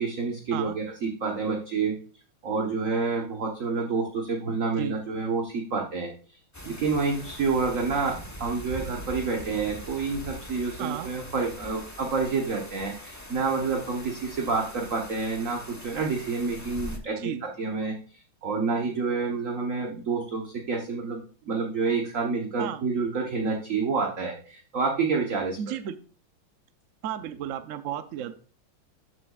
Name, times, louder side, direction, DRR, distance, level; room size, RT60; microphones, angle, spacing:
voice 1, 0.0-1.9 2.4-6.4 6.6-17.3 17.6-25.8, right 4 dB, 45° right, 1 dB, 1.3 m, -28 dB
sound 1, 6.5-17.0, left 1 dB, 15° left, 0.5 m, -42 dB
voice 2, 25.6-26.0 27.0-28.3, right 10 dB, 80° right, 10 dB, 0.7 m, -33 dB
13.0 x 7.8 x 2.4 m, 0.40 s
omnidirectional pair, 2.3 m